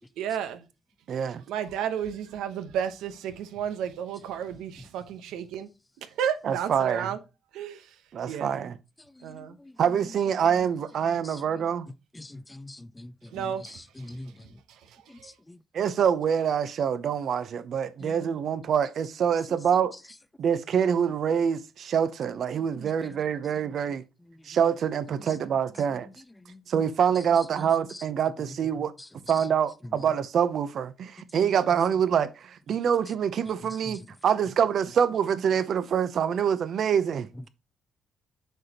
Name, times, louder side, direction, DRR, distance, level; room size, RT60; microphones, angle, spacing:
voice 1, 0.2-0.7 1.5-5.7 6.2-7.2 7.5-7.9 8.2-8.5 9.2-9.6 13.3-15.3, right 8 dB, 90° right, 0.9 m, -33 dB
voice 2, 1.1-1.4 6.4-7.2 8.1-8.8 9.8-11.9 15.7-20.0 20.4-24.0 24.4-26.1 26.7-28.9 29.3-37.3, right 8 dB, 65° right, 0.7 m, -25 dB
voice 3, 9.2-9.8 12.1-14.6 15.1-15.6 18.0-18.2 26.5-26.6 31.3-31.4 33.9-34.0, left 1 dB, 15° left, 0.5 m, -44 dB
7.7 x 5.1 x 2.9 m
cardioid pair, 90°, 0 cm